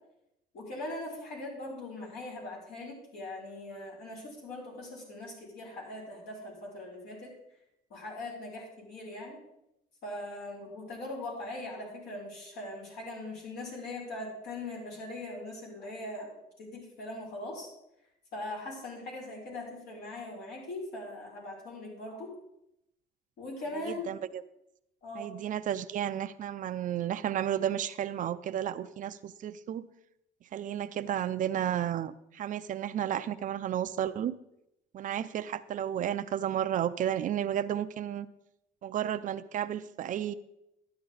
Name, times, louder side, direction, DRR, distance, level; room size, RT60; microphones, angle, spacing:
voice 1, 0.5-7.3 7.9-9.4 10.0-16.3 16.6-17.7 18.3-22.3 23.4-24.1 25.0-25.3, left 2 dB, 75° left, -4 dB, 5.2 m, -40 dB
voice 2, 23.7-24.4 25.1-29.9 30.5-34.4 34.9-38.3 38.8-40.3, right 10 dB, 50° right, 12 dB, 0.5 m, -32 dB
12.0 x 9.6 x 4.0 m, 0.83 s
cardioid pair, 110°, 17 cm